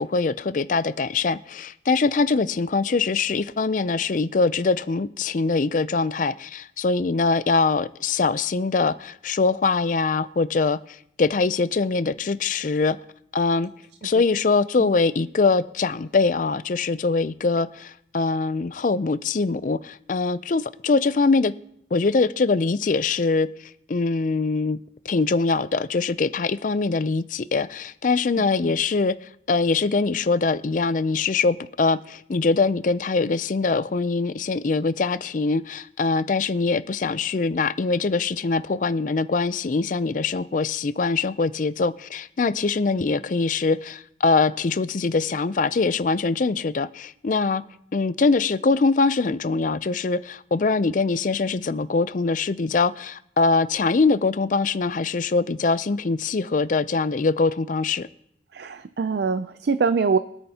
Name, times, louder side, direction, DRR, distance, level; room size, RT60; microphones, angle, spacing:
voice 1, 0.0-13.0 13.3-13.7 14.0-21.5 21.9-23.5 23.9-24.8 25.1-29.1 29.5-47.6 47.9-58.1, left 4 dB, 45° left, 0.4 m, -23 dB
voice 2, 58.5-60.2, right 5 dB, 60° right, 0.4 m, -23 dB
23.0 x 8.8 x 2.8 m
head